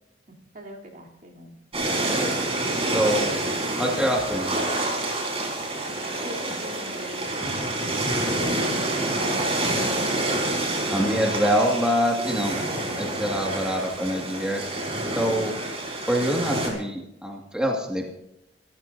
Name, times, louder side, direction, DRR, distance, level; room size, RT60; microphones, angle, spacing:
voice 1, 0.3-1.6 6.2-7.8 9.1-10.0, right 1 dB, 50° right, -2 dB, 3.5 m, -41 dB
sound 1, 1.7-16.7, right 1 dB, 35° right, 4.6 m, -27 dB
voice 2, 2.9-3.4 3.8-4.6 9.6-9.8 10.9-12.7 13.0-14.6 15.1-15.6 16.1-18.1, equal, 5° right, -1 dB, 2.1 m, -25 dB
27.5 x 14.0 x 2.8 m, 0.85 s
head